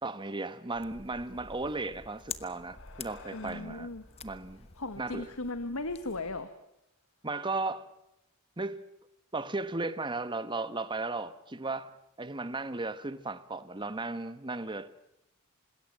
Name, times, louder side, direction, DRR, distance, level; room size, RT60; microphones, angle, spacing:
voice 1, 0.0-3.9 4.2-4.7 5.0-5.3 7.2-7.9 8.6-8.8 9.3-11.9 12.2-14.9, right 3 dB, 20° right, 1.2 m, -35 dB
sound 1, 0.7-6.4, left 6 dB, 30° left, 1.1 m, -48 dB
sound 2, 2.0-6.7, left 4 dB, 60° left, 2.4 m, -57 dB
voice 2, 3.3-4.0 4.8-6.5, left 2 dB, 75° left, 1.6 m, -37 dB
26.5 x 20.5 x 7.7 m
head